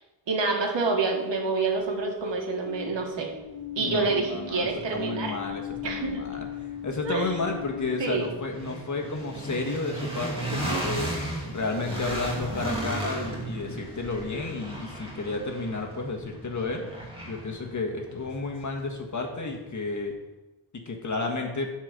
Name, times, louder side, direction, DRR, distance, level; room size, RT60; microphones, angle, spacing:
voice 1, 0.3-3.3 3.8-5.3 5.8-6.2 7.1-7.3 8.0-8.3, right 4 dB, 80° right, 1 dB, 2.0 m, -28 dB
sound 1, 0.8-8.4, left 4 dB, 70° left, 1.6 m, -37 dB
sound 2, 3.0-3.1 3.6-19.5, right 1 dB, 10° right, 2.4 m, -36 dB
voice 2, 3.8-6.5 6.8-16.8 17.3-20.1 20.7-21.7, left 3 dB, 40° left, 2 dB, 1.6 m, -32 dB
11.5 x 4.5 x 6.7 m, 1.1 s
wide cardioid pair, 170°, 43 cm